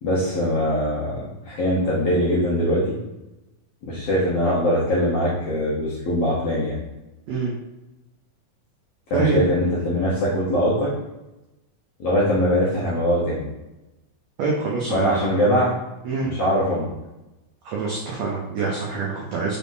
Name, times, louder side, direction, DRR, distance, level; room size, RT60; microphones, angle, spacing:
voice 1, 0.0-3.0 3.9-6.8 9.1-10.9 12.0-13.4 14.9-15.7 16.2-16.9, equal, 70° left, -7 dB, 1.5 m, -22 dB
voice 2, 9.1-9.4 14.4-15.4 16.0-16.3 17.6-19.6, right 4 dB, 85° right, -3 dB, 1.5 m, -25 dB
5.3 x 3.5 x 2.6 m, 0.98 s
omnidirectional pair, 3.9 m